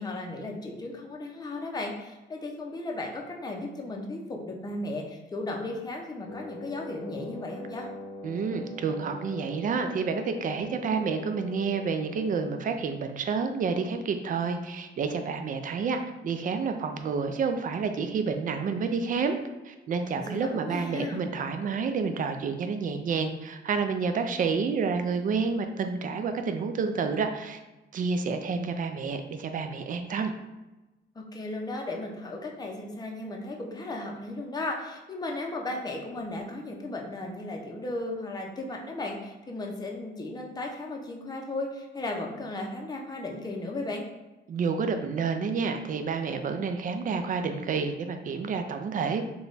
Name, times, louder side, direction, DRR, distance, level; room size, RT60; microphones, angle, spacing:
voice 1, 0.0-7.9 20.1-21.2 31.1-44.0, left 2 dB, 20° left, 0 dB, 0.6 m, -35 dB
Wind instrument woodwind instrument, 6.2-12.8, left 1 dB, 80° left, 0.5 m, -42 dB
voice 2, 8.2-19.4 19.6-27.6 27.9-30.3 44.5-49.3, right 5 dB, 45° right, 6 dB, 0.4 m, -29 dB
3.2 x 2.3 x 3.9 m, 1.1 s
cardioid pair, 90°, 20 cm